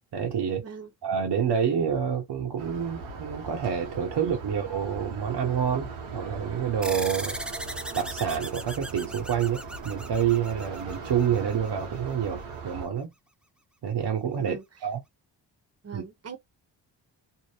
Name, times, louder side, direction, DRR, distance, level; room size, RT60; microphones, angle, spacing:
voice 1, 0.1-0.6 1.0-7.4 7.9-13.1 13.8-15.0 15.9-16.0, right 8 dB, 60° right, 0.9 m, -28 dB
sound 1, 2.6-12.9, right 4 dB, 85° right, 1.1 m, -39 dB
sound 2, 6.8-11.7, right 1 dB, ahead, 0.3 m, -38 dB
voice 2, 15.8-16.4, right 5 dB, 30° right, 1.0 m, -40 dB
2.7 x 2.0 x 3.3 m
supercardioid pair, 55°, 47 cm